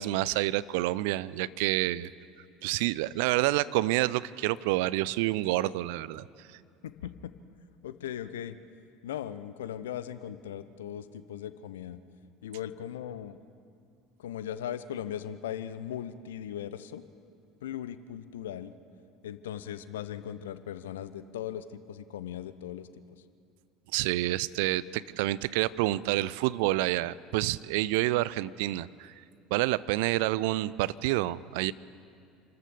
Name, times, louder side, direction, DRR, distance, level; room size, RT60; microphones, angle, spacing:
voice 1, 0.0-2.1 2.6-6.3 23.9-29.1 29.5-31.7, right 17 dB, 60° right, 20 dB, 0.5 m, -28 dB
voice 2, 6.8-7.3 7.8-8.5 9.0-12.0 12.4-13.4 14.2-17.0 17.6-18.7 19.2-22.9, left 10 dB, 70° left, 13 dB, 0.8 m, -38 dB
28.5 x 13.5 x 7.0 m, 2.4 s
figure-of-eight pair, 65°, 0 cm